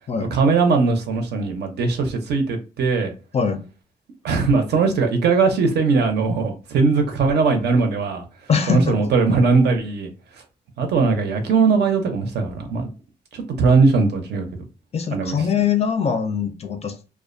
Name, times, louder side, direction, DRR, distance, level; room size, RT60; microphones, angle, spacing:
voice 1, 0.3-3.1 4.2-8.2 8.7-10.1 10.8-12.9 13.3-14.6 15.1-15.4, right 4 dB, 65° right, 0.6 m, -19 dB
voice 2, 8.5-9.0 14.9-17.0, left 6 dB, 35° left, 0.4 m, -22 dB
2.4 x 2.1 x 2.5 m
cardioid pair, 130°, 18 cm